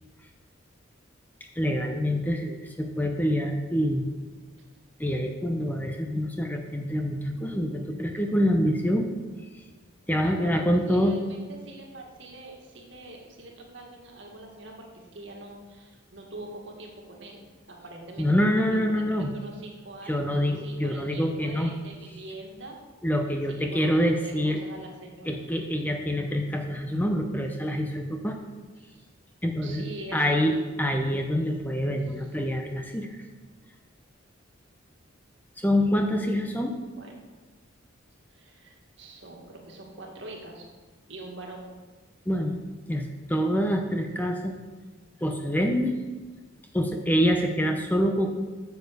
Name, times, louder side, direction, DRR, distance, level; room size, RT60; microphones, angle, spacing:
voice 1, 1.5-4.1 5.0-9.1 9.4-9.6 10.1-11.2 18.2-19.3 20.1-21.7 23.0-24.6 25.2-28.4 29.4-33.2 35.6-36.7 42.3-42.6 42.9-44.5 45.2-45.9 46.7-48.3, equal, 10° left, 3 dB, 0.7 m, -26 dB
voice 2, 10.2-22.8 23.4-25.3 28.9-29.0 29.6-30.4 36.2-36.7 36.9-37.2 38.3-40.7 41.1-41.8, right 2 dB, 60° right, 0 dB, 2.0 m, -44 dB
8.8 x 7.2 x 6.7 m, 1.3 s
head